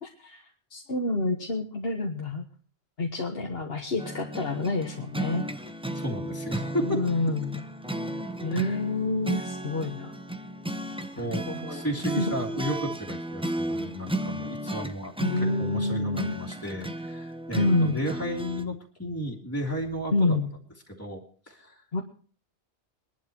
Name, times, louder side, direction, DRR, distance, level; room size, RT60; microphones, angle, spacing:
voice 1, 0.0-2.5 3.0-5.4 6.8-7.6 8.4-10.1 11.2-11.9 12.2-12.3 15.2-16.4 17.6-18.0 20.1-20.5 21.9-22.0, left 3 dB, 60° left, 2 dB, 1.8 m, -28 dB
sound 1, 4.0-18.6, right 1 dB, 5° right, 0.9 m, -34 dB
voice 2, 5.9-7.0 8.5-8.8 11.2-20.4 20.9-21.8, equal, 15° left, -1 dB, 2.6 m, -34 dB
23.0 x 12.0 x 3.0 m, 0.42 s
omnidirectional pair, 1.1 m